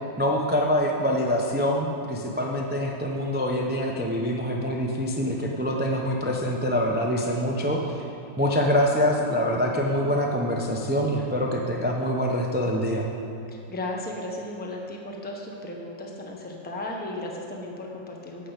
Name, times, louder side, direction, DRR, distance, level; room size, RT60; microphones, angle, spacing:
voice 1, 0.2-8.0 8.4-13.1, equal, 15° right, 0 dB, 0.3 m, -25 dB
voice 2, 13.5-18.5, left 1 dB, 5° left, 0 dB, 0.8 m, -35 dB
9.9 x 6.2 x 8.2 m, 2.8 s
omnidirectional pair, 1.9 m